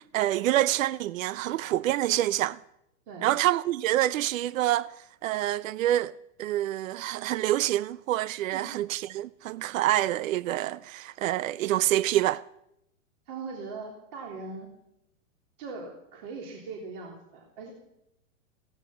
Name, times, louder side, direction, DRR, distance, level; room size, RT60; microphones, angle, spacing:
voice 1, 0.1-2.6 3.2-4.9 5.2-6.1 6.4-12.4, right 14 dB, 75° right, 0.6 m, -26 dB
voice 2, 13.3-14.7 15.6-17.7, right 4 dB, 45° right, 3.3 m, -40 dB
16.5 x 15.0 x 5.8 m
supercardioid pair, 160°, 40 cm